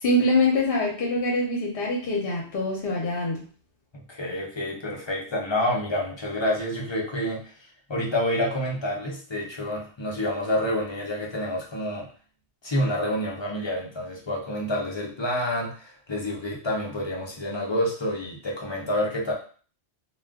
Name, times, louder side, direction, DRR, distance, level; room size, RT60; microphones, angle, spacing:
voice 1, 0.0-3.4, left 1 dB, 60° left, -2 dB, 0.9 m, -24 dB
voice 2, 3.9-7.5 7.9-12.1 12.6-19.3, left 1 dB, 30° left, -3 dB, 0.6 m, -28 dB
2.4 x 2.3 x 3.5 m, 0.41 s
omnidirectional pair, 1.2 m